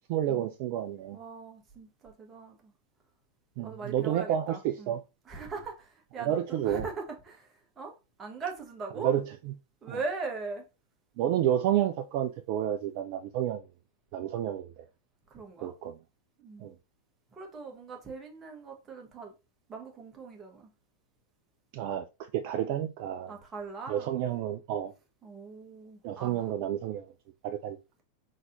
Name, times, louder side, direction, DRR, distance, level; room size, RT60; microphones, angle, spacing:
voice 1, 0.1-1.2 3.6-5.0 6.3-6.8 9.0-9.2 9.9-10.0 11.2-13.6 14.1-14.9 15.6-16.0 16.6-16.7 21.7-22.0 22.3-23.3 23.9-24.9 26.0-27.1 27.4-27.8, right 11 dB, 45° right, 0.3 m, -30 dB
voice 2, 1.1-2.7 3.6-4.9 5.2-9.1 9.8-10.7 15.3-15.7 16.4-16.7 17.3-19.3 19.7-20.7 23.3-24.1 25.2-26.5, right 4 dB, 20° right, 1.2 m, -40 dB
4.1 x 4.0 x 2.5 m
figure-of-eight pair, 90°, 0 cm